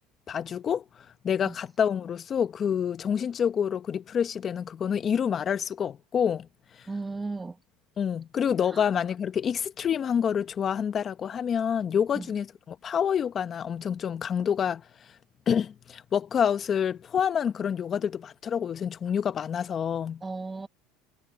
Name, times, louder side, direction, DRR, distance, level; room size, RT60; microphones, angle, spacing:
voice 1, 0.3-0.8 1.2-6.5 6.8-6.9 8.0-14.8 15.5-20.2, left 8 dB, 35° left, 1.4 m, -27 dB
voice 2, 6.9-7.6 8.7-8.8 12.1-12.3 20.2-20.7, right 3 dB, 15° right, 1.3 m, -35 dB
supercardioid pair, 120°, 0 cm